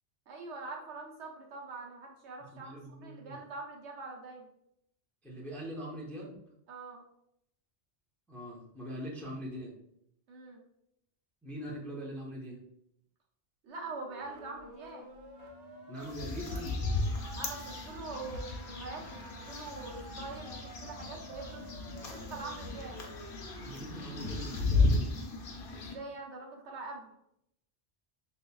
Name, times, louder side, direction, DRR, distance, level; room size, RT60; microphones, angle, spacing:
voice 1, 0.3-4.5 6.7-7.0 10.3-10.6 13.6-15.1 17.4-19.2 19.5-21.7 22.1-23.0 25.7-27.1, right 3 dB, 85° right, 0 dB, 1.0 m, -44 dB
voice 2, 2.6-3.4 5.2-6.4 8.3-9.7 11.4-12.6 15.9-16.8 23.6-25.1, equal, ahead, -3 dB, 0.5 m, -42 dB
sound 1, 13.7-23.7, right 1 dB, 40° right, 0.8 m, -50 dB
sound 2, 16.0-25.9, left 3 dB, 60° left, 0.8 m, -34 dB
5.4 x 2.1 x 2.2 m, 0.76 s
omnidirectional pair, 1.1 m